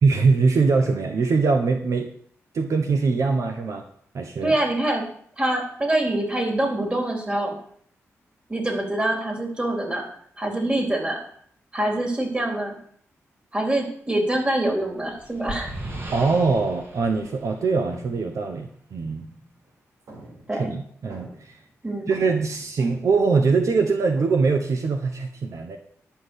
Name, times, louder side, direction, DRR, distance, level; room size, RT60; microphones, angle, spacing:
voice 1, 0.0-2.1 2.5-3.8 4.1-4.5 16.1-19.3 20.6-21.6 22.1-25.8, right 4 dB, 70° right, 5 dB, 1.2 m, -22 dB
voice 2, 4.4-5.0 5.4-7.5 8.5-10.0 10.4-11.2 11.7-12.8 13.5-15.7 20.5-20.7 21.8-22.1, right 1 dB, 20° right, 2 dB, 3.9 m, -25 dB
sound 1, 14.9-18.3, right 1 dB, 45° right, 3.1 m, -38 dB
sound 2, 17.9-19.7 20.1-21.7 22.0-23.7 24.1-24.5, right 1 dB, 90° right, 4.2 m, -46 dB
11.0 x 5.9 x 8.2 m, 0.62 s
cardioid pair, 80°, 5 cm